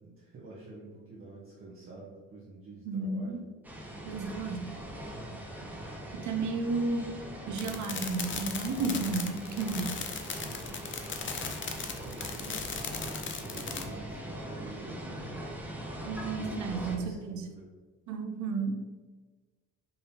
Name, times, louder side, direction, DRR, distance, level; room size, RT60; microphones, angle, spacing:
voice 1, 0.0-3.4 5.0-5.4 10.4-10.8 12.0-15.1 16.1-17.7, right 3 dB, 45° right, -6 dB, 1.0 m, -48 dB
voice 2, 2.9-3.4 4.1-4.8 6.1-7.2 7.5-10.0 16.0-17.4 18.1-18.8, right 3 dB, 75° right, 6 dB, 0.6 m, -32 dB
sound 1, 3.6-17.0, right 1 dB, 5° right, 0.7 m, -41 dB
sound 2, 7.6-13.8, left 6 dB, 40° left, 0.6 m, -38 dB
5.4 x 2.8 x 2.8 m, 1.3 s
cardioid pair, 90°, 30 cm